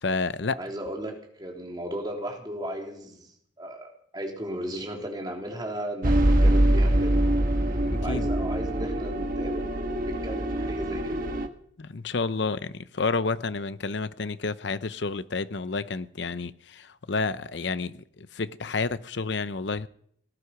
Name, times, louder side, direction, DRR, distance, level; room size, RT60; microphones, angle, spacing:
voice 1, 0.0-0.6 7.8-8.3 11.8-19.9, left 4 dB, 70° left, 0.7 m, -30 dB
voice 2, 0.6-3.3 3.6-3.9 4.1-7.1 8.0-11.2, right 1 dB, 25° right, 3.5 m, -35 dB
sound 1, 6.0-11.5, right 1 dB, 45° right, 1.3 m, -24 dB
18.5 x 11.5 x 6.0 m
head